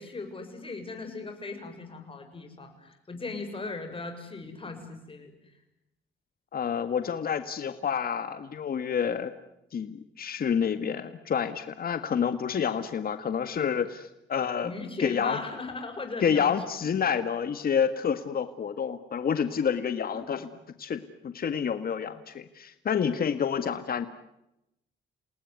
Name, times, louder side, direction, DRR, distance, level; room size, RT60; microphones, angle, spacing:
voice 1, 0.0-5.5 14.6-16.5 20.1-20.4, left 3 dB, 25° left, 5 dB, 7.1 m, -38 dB
voice 2, 6.5-9.3 9.7-14.7 15.0-15.4 16.2-20.5 20.8-24.1, left 7 dB, 50° left, 10 dB, 1.8 m, -28 dB
29.5 x 19.0 x 9.7 m, 0.85 s
cardioid pair, 90°, 20 cm